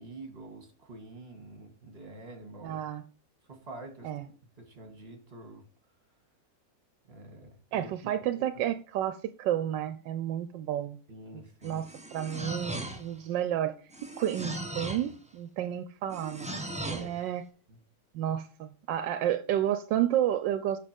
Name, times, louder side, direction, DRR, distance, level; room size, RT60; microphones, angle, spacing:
voice 1, 0.0-2.8 3.4-4.2 4.6-5.6 7.1-7.9 11.1-11.8 16.9-17.1 17.7-17.8, right 2 dB, 35° right, 2.4 m, -46 dB
voice 2, 2.6-3.0 4.0-4.3 7.7-11.0 11.3-13.7 14.0-17.4 18.1-20.8, right 11 dB, 80° right, 1.3 m, -31 dB
sound 1, 11.6-13.2 13.9-15.1 16.1-17.2, right 1 dB, 5° right, 1.0 m, -38 dB
7.6 x 6.1 x 5.2 m
omnidirectional pair, 2.0 m